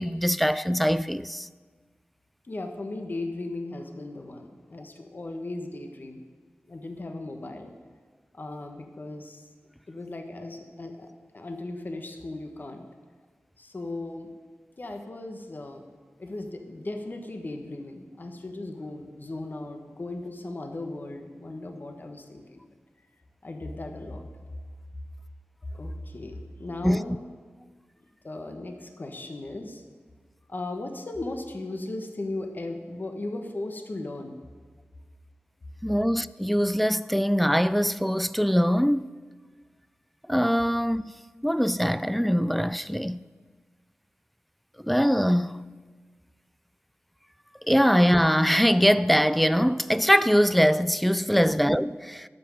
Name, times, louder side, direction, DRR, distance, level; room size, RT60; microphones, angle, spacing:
voice 1, 0.0-1.5 26.8-27.0 35.8-39.1 40.3-41.1 41.4-43.2 44.8-45.7 47.7-52.3, equal, ahead, 0.3 m, -22 dB
voice 2, 2.4-6.3 6.7-7.7 8.3-9.5 9.9-12.9 13.6-14.3 14.8-15.8 16.2-22.7 23.4-24.2 25.7-27.2 28.2-29.8 30.5-34.4 51.3-51.6, left 2 dB, 45° left, 1.3 m, -37 dB
13.0 x 6.0 x 9.2 m
wide cardioid pair, 90°, 5 cm